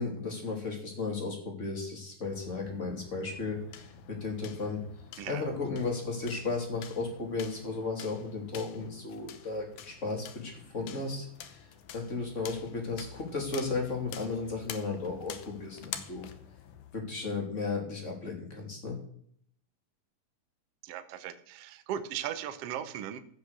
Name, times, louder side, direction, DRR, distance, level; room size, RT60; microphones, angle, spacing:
voice 1, 0.0-3.6 4.1-4.8 5.3-11.6 11.9-16.2 16.9-19.0, left 3 dB, 20° left, 1 dB, 2.8 m, -34 dB
sound 1, 2.2-17.0, left 9 dB, 65° left, 2.1 m, -48 dB
voice 2, 5.2-5.5 20.8-23.2, right 10 dB, 75° right, 10 dB, 1.4 m, -37 dB
15.5 x 6.0 x 6.6 m, 0.62 s
omnidirectional pair, 4.1 m